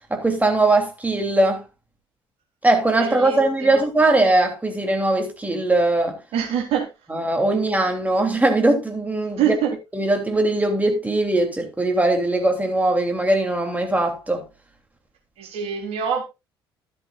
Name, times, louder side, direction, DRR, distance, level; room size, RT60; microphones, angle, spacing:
voice 1, 0.1-1.6 2.6-6.2 7.1-9.5 9.9-14.4, right 2 dB, 10° right, 3.1 m, -20 dB
voice 2, 3.0-3.8 6.3-6.9 9.4-9.7 15.4-16.2, right 8 dB, 55° right, 3.4 m, -25 dB
13.0 x 10.5 x 2.5 m
figure-of-eight pair, 55°, 12 cm